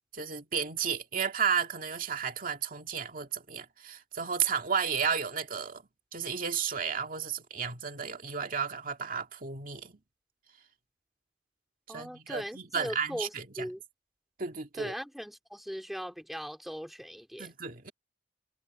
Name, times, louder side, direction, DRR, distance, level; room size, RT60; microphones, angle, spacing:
voice 1, 0.1-5.8 6.1-10.0 11.9-13.4 14.4-14.9 17.4-17.9, right 6 dB, 50° right, 2.1 m, -33 dB
voice 2, 11.9-13.8 14.7-17.5, equal, ahead, 2.3 m, -39 dB
head